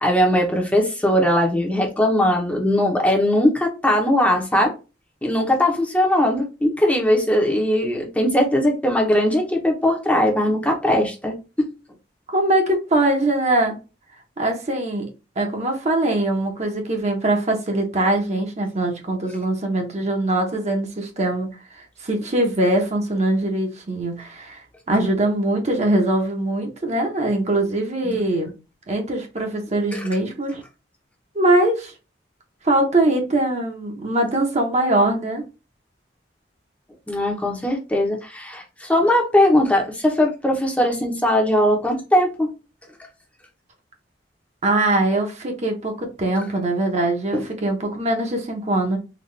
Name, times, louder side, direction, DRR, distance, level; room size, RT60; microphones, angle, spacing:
voice 1, 0.0-4.7 5.2-11.7 28.0-28.2 29.9-30.0 37.1-42.5 47.3-47.4, left 1 dB, 10° left, 0.8 m, -20 dB
voice 2, 12.3-13.8 14.4-15.1 15.4-21.5 21.7-28.5 28.9-30.6 31.3-31.9 32.6-35.4 44.6-49.0, right 1 dB, 40° right, 0.9 m, -22 dB
4.0 x 2.4 x 3.2 m
head